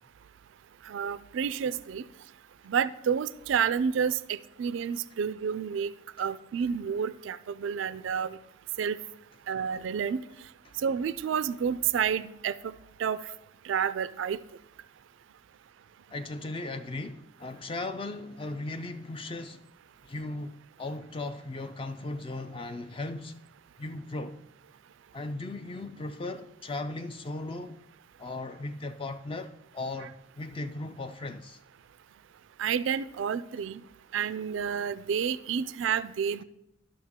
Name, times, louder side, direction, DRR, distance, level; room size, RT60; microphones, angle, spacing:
voice 1, 0.9-2.0 2.7-5.9 6.2-8.4 8.8-9.0 9.5-10.2 10.8-12.7 13.0-13.2 13.7-14.4 32.6-33.8 34.1-36.4, right 7 dB, 65° right, 0.3 m, -29 dB
voice 2, 16.1-19.7 20.0-23.4 23.8-24.4 25.1-27.8 28.2-31.6, left 2 dB, 25° left, 0.3 m, -37 dB
12.5 x 6.0 x 3.6 m
head